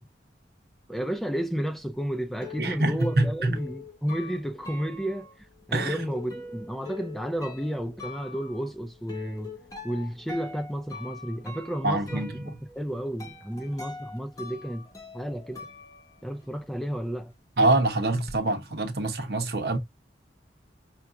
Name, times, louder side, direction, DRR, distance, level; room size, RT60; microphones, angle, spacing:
voice 1, 0.9-9.6 9.8-14.9 15.1-15.7 16.2-17.3, equal, ahead, 0.4 m, -32 dB
sound 1, 1.9-16.7 16.9-18.4, left 3 dB, 20° left, 0.9 m, -44 dB
voice 2, 2.6-3.6 5.7-6.0 11.8-12.6 17.6-19.8, right 2 dB, 60° right, 0.8 m, -25 dB
5.8 x 2.4 x 2.6 m
head